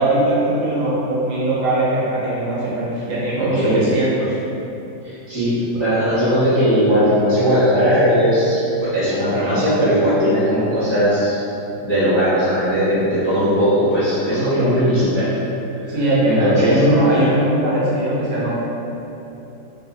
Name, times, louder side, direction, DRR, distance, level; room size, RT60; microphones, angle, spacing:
voice 1, 0.0-4.4 14.3-14.8 15.9-18.6, right 1 dB, 80° right, -8 dB, 1.5 m, -20 dB
voice 2, 3.4-3.8 5.3-5.5 5.8-11.4 11.8-15.3 15.9-16.0 16.2-16.8, equal, 15° left, -16 dB, 0.9 m, -18 dB
3.2 x 2.7 x 2.6 m, 2.9 s
omnidirectional pair, 2.2 m